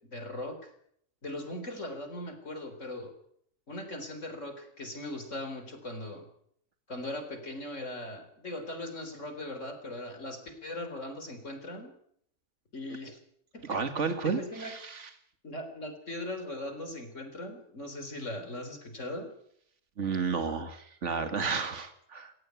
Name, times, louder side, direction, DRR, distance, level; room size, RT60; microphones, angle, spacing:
voice 1, 0.1-0.7 1.2-3.1 3.7-6.3 6.9-11.9 12.7-13.2 13.5-13.8 14.2-14.7 15.4-19.3, left 1 dB, 70° left, 7 dB, 4.3 m, -39 dB
voice 2, 13.6-15.1 20.0-22.3, right 5 dB, 65° right, 8 dB, 2.3 m, -32 dB
18.0 x 17.5 x 9.5 m, 0.68 s
omnidirectional pair, 1.3 m